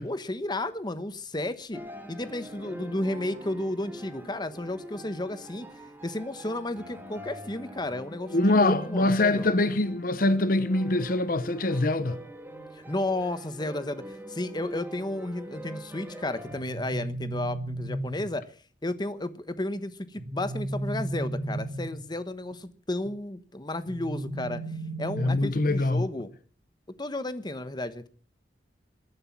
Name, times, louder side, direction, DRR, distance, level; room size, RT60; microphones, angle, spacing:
voice 1, 0.0-1.8 2.1-5.7 6.0-9.5 12.7-18.5 18.8-24.6 25.0-26.3 27.0-28.1, left 1 dB, 25° left, 1.1 m, -33 dB
sound 1, 1.7-16.6, equal, 10° right, 2.3 m, -44 dB
voice 2, 8.3-12.2 25.2-26.0, left 2 dB, 55° left, 0.9 m, -24 dB
sound 2, 16.5-18.4 20.1-22.1 23.9-25.8, right 1 dB, 45° right, 1.8 m, -34 dB
20.5 x 11.0 x 6.0 m
head